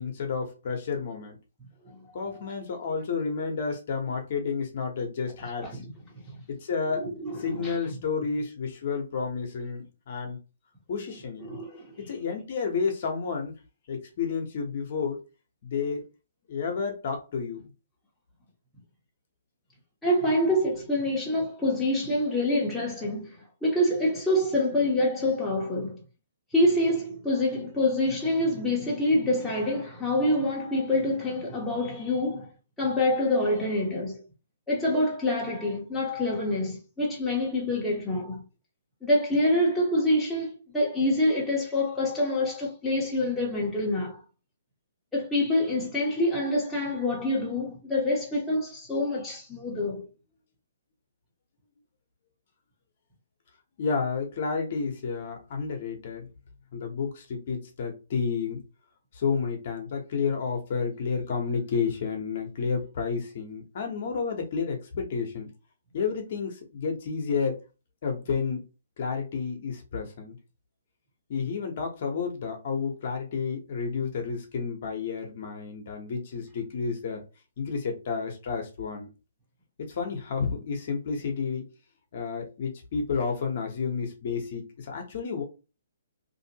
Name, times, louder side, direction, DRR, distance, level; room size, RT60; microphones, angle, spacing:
voice 1, 0.0-1.4 2.1-5.8 6.5-7.1 7.4-10.4 10.9-11.5 12.0-13.5 13.9-15.2 15.6-16.0 16.5-17.7 53.8-56.3 56.7-58.6 59.1-65.5 65.9-67.6 68.0-68.6 69.0-70.3 71.3-77.2 77.6-79.1 79.9-81.7 82.1-85.4, left 5 dB, 50° left, 0.9 m, -31 dB
voice 2, 7.0-7.7 11.4-12.0 20.0-23.3 23.6-26.0 26.5-32.5 32.8-34.2 34.7-38.4 39.0-44.2 45.1-50.0, left 1 dB, 5° left, 0.9 m, -26 dB
2.6 x 2.5 x 2.8 m
hypercardioid pair, 160°, 0 cm